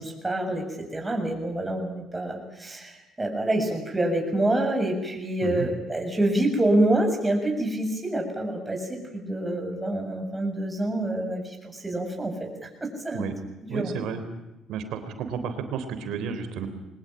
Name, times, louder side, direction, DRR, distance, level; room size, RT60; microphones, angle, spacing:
voice 1, 0.0-13.3 13.6-13.9, right 1 dB, 15° right, 3 dB, 7.1 m, -27 dB
voice 2, 13.7-14.2 14.7-16.7, right 7 dB, 75° right, 9 dB, 3.6 m, -32 dB
23.0 x 19.5 x 9.0 m, 0.97 s
supercardioid pair, 75°, 0 cm